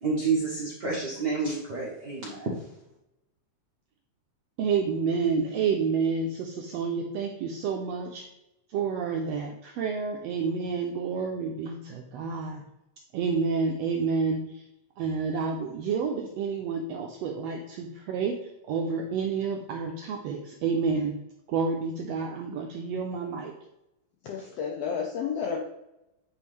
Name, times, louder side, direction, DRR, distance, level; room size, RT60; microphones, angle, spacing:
voice 1, 0.0-2.5, right 4 dB, 70° right, -5 dB, 0.9 m, -29 dB
voice 2, 4.6-8.3 8.7-12.6 13.1-14.6 15.0-21.2 21.5-23.5, right 5 dB, 90° right, 2 dB, 1.4 m, -29 dB
voice 3, 24.2-25.6, left 6 dB, 80° left, 0 dB, 1.4 m, -31 dB
8.8 x 3.5 x 3.1 m, 0.89 s
omnidirectional pair, 3.5 m